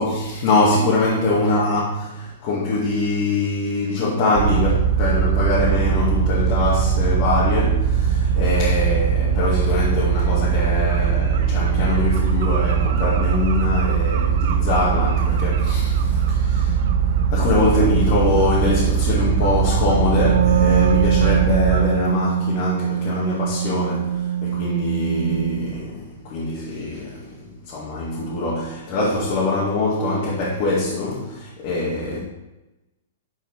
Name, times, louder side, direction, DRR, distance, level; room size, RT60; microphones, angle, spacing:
voice 1, 0.0-16.8 17.3-32.2, left 2 dB, 35° left, 2.1 m, -23 dB
sound 1, 4.3-21.9, right 7 dB, 55° right, 0.8 m, -20 dB
Wind instrument woodwind instrument, 20.1-25.8, right 9 dB, 90° right, 0.4 m, -22 dB
11.0 x 5.1 x 4.8 m
hypercardioid pair, 160°, 0 cm